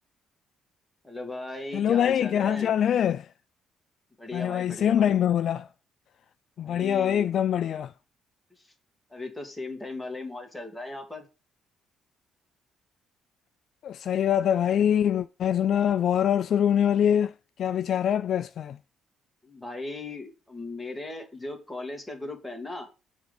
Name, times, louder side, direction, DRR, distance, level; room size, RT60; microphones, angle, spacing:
voice 1, 1.0-2.7 4.2-5.2 6.6-7.3 8.5-8.7 9.1-11.2 19.4-22.9, left 2 dB, 5° left, 1.7 m, -37 dB
voice 2, 1.7-3.3 4.3-5.7 6.6-7.9 13.8-17.3 17.6-18.8, left 9 dB, 55° left, 0.3 m, -24 dB
7.2 x 3.8 x 5.0 m
cardioid pair, 145°, 0 cm